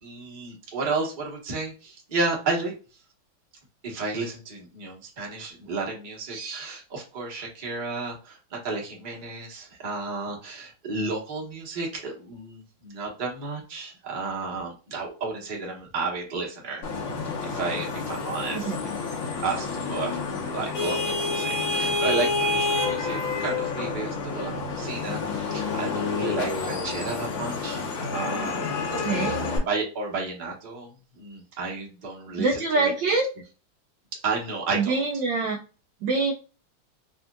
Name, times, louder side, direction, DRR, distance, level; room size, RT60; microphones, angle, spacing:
voice 1, 0.0-2.7 3.8-16.8 17.4-18.7 19.4-20.2 20.5-27.8 28.1-33.2 34.2-34.9, right 3 dB, 35° right, -2 dB, 0.9 m, -32 dB
Vehicle horn car horn honking / Traffic noise roadway noise, 16.8-29.6, left 3 dB, 75° left, 2.0 m, -29 dB
voice 2, 28.9-29.4 32.4-33.3 34.8-35.6 36.0-36.3, right 3 dB, 75° right, 1 dB, 1.1 m, -25 dB
4.2 x 2.7 x 2.2 m, 0.35 s
omnidirectional pair, 2.3 m